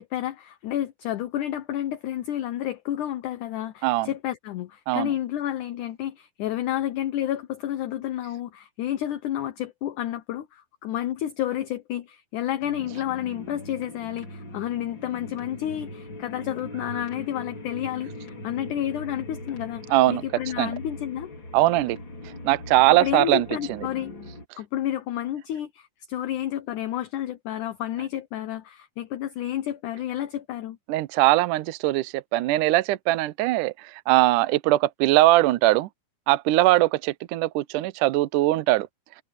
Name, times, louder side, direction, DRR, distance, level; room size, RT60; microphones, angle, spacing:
voice 1, 0.0-21.3 22.9-24.1 24.6-30.8, left 12 dB, 70° left, 2.1 m, -30 dB
sound 1, 12.6-24.5, left 1 dB, 30° left, 4.8 m, -40 dB
voice 2, 19.9-20.2 20.6-20.7 21.5-22.0 22.4-23.5 30.9-35.9 36.3-38.9, right 17 dB, 80° right, 1.9 m, -21 dB
omnidirectional pair, 4.4 m